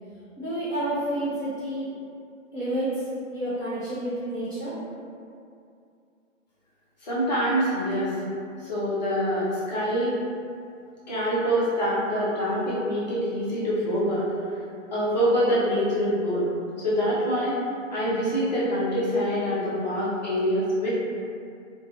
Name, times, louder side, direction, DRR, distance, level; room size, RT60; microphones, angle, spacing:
voice 1, 0.4-1.9 2.5-4.8, right 1 dB, 15° right, -17 dB, 0.5 m, -29 dB
voice 2, 7.0-8.1 8.6-10.1 11.1-14.3 14.9-16.5 16.8-17.6 17.9-20.9, equal, 35° left, -9 dB, 0.6 m, -25 dB
2.4 x 2.2 x 2.8 m, 2.5 s
hypercardioid pair, 155°, 39 cm